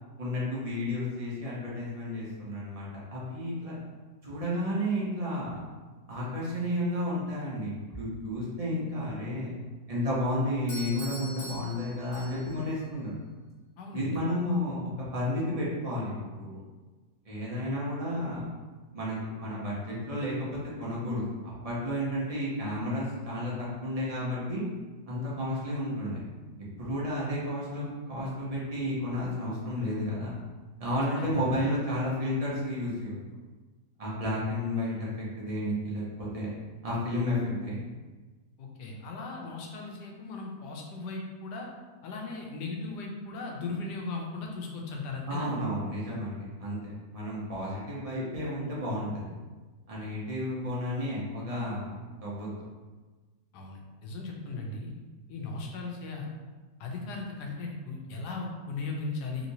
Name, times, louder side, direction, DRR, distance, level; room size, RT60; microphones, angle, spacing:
voice 1, 0.2-3.8 4.2-5.6 6.1-9.5 9.9-13.1 13.9-16.6 17.2-18.4 18.9-21.2 21.6-24.6 25.1-26.2 26.8-30.3 30.8-33.2 34.0-35.1 35.4-36.5 36.8-37.9 45.3-46.8 47.1-49.2 49.9-51.9 52.2-52.6, left 1 dB, 40° right, -7 dB, 0.5 m, -32 dB
Doorbell, 10.7-12.7, equal, 40° left, 0.9 m, -43 dB
voice 2, 13.8-14.2 31.2-31.4 38.6-41.7 42.0-45.5 53.5-54.9 55.3-56.3 56.8-59.5, left 3 dB, 80° left, 0 dB, 1.2 m, -37 dB
3.3 x 2.9 x 2.7 m, 1.3 s
omnidirectional pair, 1.8 m